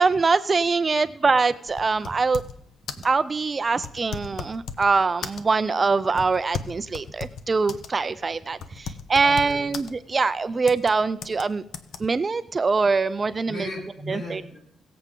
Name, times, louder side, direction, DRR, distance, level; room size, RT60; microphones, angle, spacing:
voice 1, 0.0-2.4 3.0-11.6 12.0-13.7 14.1-14.4, right 4 dB, 30° right, 14 dB, 0.4 m, -23 dB
sound 1, 1.7-2.6 2.9-3.1 3.8-4.9 5.2-5.7 6.2-7.9 8.2-8.3 8.6-9.9 10.7-10.9 11.2-11.4 11.7-12.0, left 6 dB, 75° left, 0.9 m, -35 dB
voice 2, 9.2-9.6 13.5-14.6, equal, 50° left, -3 dB, 6.5 m, -36 dB
22.0 x 7.8 x 3.7 m, 0.76 s
cardioid pair, 130°, 0 cm